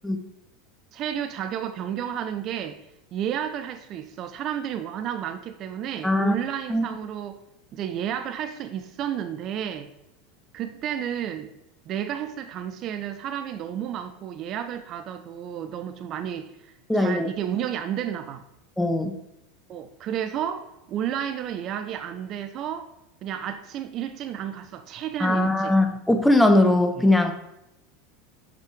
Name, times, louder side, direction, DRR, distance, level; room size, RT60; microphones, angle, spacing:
voice 1, 0.9-2.8 3.1-7.4 7.7-9.9 10.5-11.5 11.9-18.4 19.7-22.9 23.2-25.8, right 9 dB, 45° right, 0.5 m, -32 dB
voice 2, 6.0-6.3 6.7-6.9 16.9-17.3 18.8-19.2 25.2-27.3, left 1 dB, 5° left, 0.9 m, -20 dB
6.6 x 5.9 x 4.6 m
hypercardioid pair, 80°, 0 cm